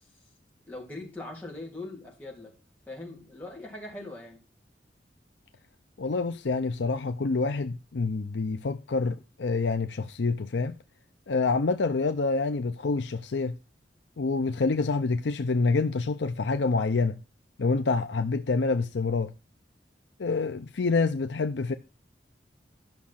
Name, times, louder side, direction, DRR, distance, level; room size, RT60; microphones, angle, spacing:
voice 1, 0.7-2.5 2.9-4.4, left 2 dB, 10° left, 3.2 m, -41 dB
voice 2, 6.0-10.8 11.3-13.6 14.2-17.2 17.6-19.3 20.2-21.7, left 3 dB, 85° left, 0.6 m, -27 dB
10.5 x 6.2 x 5.7 m
head